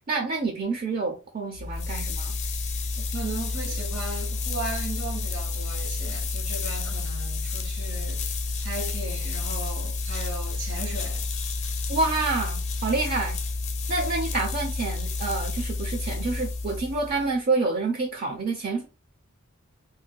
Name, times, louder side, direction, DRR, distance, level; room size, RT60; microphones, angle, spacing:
voice 1, 0.1-2.3 11.9-13.4 13.9-18.9, right 3 dB, 40° right, 0.5 m, -28 dB
sound 1, 1.5-17.3, left 3 dB, 35° left, 0.5 m, -30 dB
voice 2, 3.0-8.3 8.6-11.3, right 2 dB, 90° right, 1.4 m, -36 dB
2.7 x 2.1 x 3.6 m
head